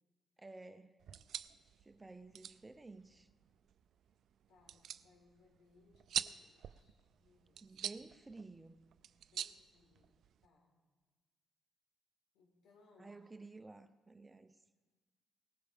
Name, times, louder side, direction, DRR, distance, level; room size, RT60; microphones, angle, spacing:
voice 1, 0.4-1.0 1.8-3.3 7.6-8.8 13.0-14.6, right 3 dB, 20° right, 0.7 m, -53 dB
sound 1, 1.0-10.5, right 9 dB, 70° right, 0.4 m, -46 dB
voice 2, 4.5-7.9 9.3-10.7 12.3-13.2, left 3 dB, 85° left, 4.1 m, -69 dB
18.5 x 15.5 x 3.6 m
cardioid pair, 90°, 0 cm